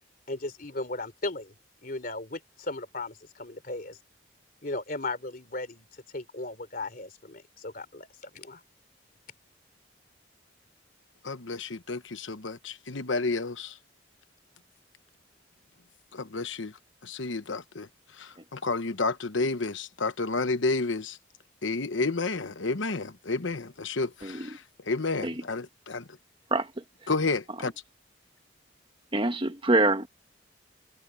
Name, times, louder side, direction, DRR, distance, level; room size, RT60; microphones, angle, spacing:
voice 1, 0.3-1.5 1.8-4.0 4.6-5.9 6.1-8.6, left 2 dB, 45° left, 3.3 m, -36 dB
voice 2, 11.2-13.8 16.1-16.7 17.0-17.9 18.2-21.2 21.6-26.1 27.1-27.7, left 3 dB, 75° left, 1.1 m, -31 dB
voice 3, 29.1-30.1, right 2 dB, 25° right, 1.3 m, -25 dB
head